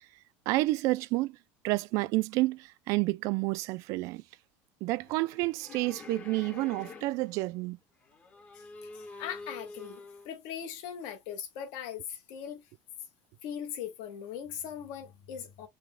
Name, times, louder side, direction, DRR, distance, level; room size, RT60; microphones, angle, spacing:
voice 1, 0.5-1.4 1.6-4.2 4.8-7.8, right 20 dB, 55° right, 0.3 m, -29 dB
sound 1, 5.0-7.5 8.0-10.3, left 3 dB, 25° left, 0.8 m, -47 dB
voice 2, 8.5-12.7 13.4-15.7, left 9 dB, 65° left, 1.1 m, -40 dB
4.8 x 2.2 x 3.6 m
cardioid pair, 155°, 7 cm